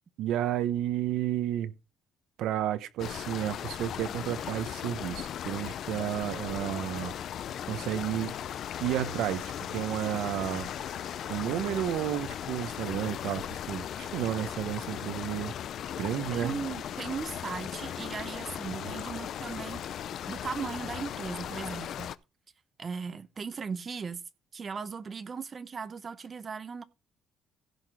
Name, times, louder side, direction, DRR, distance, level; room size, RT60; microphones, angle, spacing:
voice 1, 0.2-1.7 2.4-7.1 7.7-8.3 8.8-10.7 11.3-15.5 16.0-16.6 18.8-18.9, right 12 dB, 70° right, 1.1 m, -32 dB
sound 1, 3.0-22.2, left 10 dB, 45° left, 0.5 m, -37 dB
sound 2, 7.7-12.9, left 7 dB, 65° left, 5.0 m, -47 dB
voice 2, 16.3-22.1 22.8-24.2 24.5-26.8, right 5 dB, 25° right, 0.8 m, -38 dB
16.0 x 6.0 x 5.0 m
cardioid pair, 180°, 0 cm